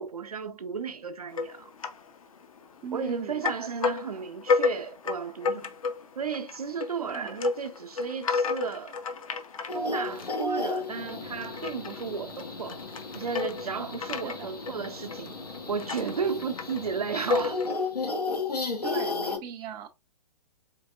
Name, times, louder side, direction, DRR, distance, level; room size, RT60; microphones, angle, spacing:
voice 1, 0.0-1.7 2.9-5.8 6.1-9.0 9.7-12.8 13.1-15.3 15.7-17.6, right 6 dB, 70° right, 0.7 m, -34 dB
sound 1, 1.3-2.1 2.4-3.1 3.4-17.9, left 4 dB, 60° left, 0.8 m, -32 dB
voice 2, 2.8-3.4 4.0-4.2 7.0-7.4 14.2-14.5 18.8-19.9, right 8 dB, 20° right, 0.5 m, -39 dB
sound 2, 9.7-19.4, left 3 dB, 85° left, 0.9 m, -34 dB
4.5 x 3.4 x 2.4 m
figure-of-eight pair, 115°, 20 cm